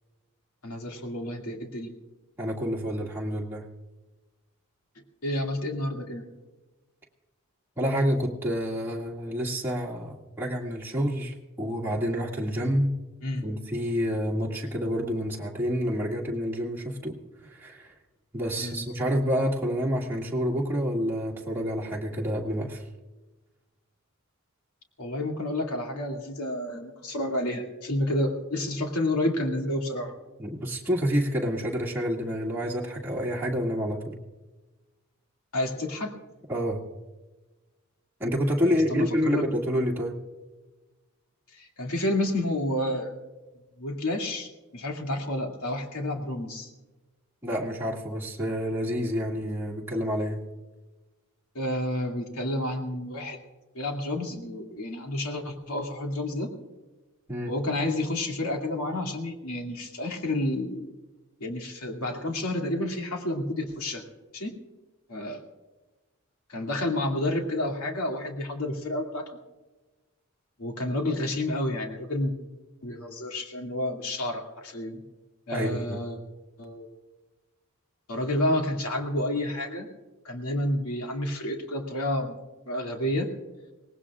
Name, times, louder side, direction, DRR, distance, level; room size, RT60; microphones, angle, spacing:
voice 1, 0.6-1.9 5.2-6.2 13.2-13.5 18.6-18.9 25.0-30.2 35.5-36.1 38.6-39.5 41.5-43.1 43.8-46.7 51.5-53.4 53.7-56.5 57.5-60.9 61.4-64.0 64.3-64.6 65.1-65.4 66.5-69.3 70.6-72.3 72.8-75.0 75.5-76.2 76.6-76.9 78.1-79.9 80.2-82.4 82.7-83.3, left 1 dB, 85° left, 2 dB, 2.4 m, -30 dB
voice 2, 2.4-3.6 7.8-12.9 13.4-17.1 17.4-17.9 18.3-22.8 30.4-34.2 36.5-36.8 38.2-40.2 47.4-50.4 57.3-57.5 75.5-76.0, equal, 10° right, -5 dB, 2.1 m, -28 dB
24.0 x 19.0 x 2.4 m, 1.2 s
head